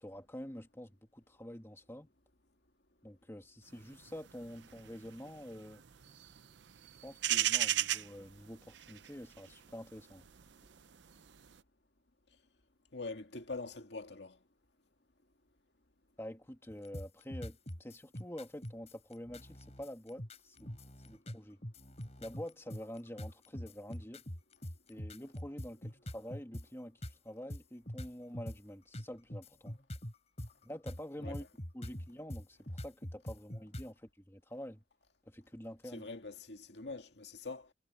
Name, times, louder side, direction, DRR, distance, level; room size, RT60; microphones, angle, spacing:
voice 1, 0.0-2.1 3.0-5.8 7.0-10.3 16.2-20.7 21.1-21.6 22.2-24.2 24.9-27.0 27.2-29.8 30.6-31.5 31.7-34.8 35.3-36.1, equal, 15° left, 2.0 m, -47 dB
sound 1, 3.8-11.6, right 12 dB, 70° right, 0.7 m, -36 dB
voice 2, 12.9-14.4 31.2-31.4 35.8-37.7, left 3 dB, 65° left, 2.2 m, -44 dB
sound 2, 16.7-26.7 27.0-27.1 27.5-28.6 28.9-33.9, equal, 35° left, 3.5 m, -44 dB
head